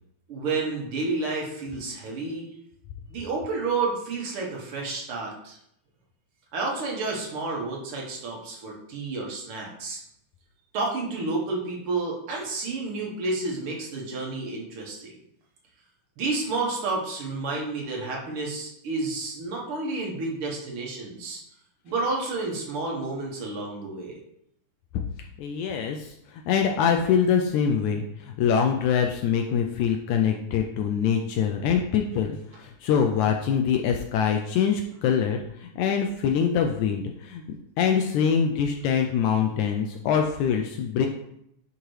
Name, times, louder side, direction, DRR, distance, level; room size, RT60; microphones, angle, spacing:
voice 1, 0.3-2.5 3.1-5.6 6.5-10.0 10.7-15.1 16.2-21.4 21.8-24.2, right 3 dB, 55° right, -2 dB, 1.8 m, -30 dB
voice 2, 25.4-26.1 26.5-37.4 37.8-41.1, left 7 dB, 80° left, 3 dB, 1.8 m, -24 dB
11.0 x 3.7 x 3.2 m, 0.74 s
omnidirectional pair, 3.7 m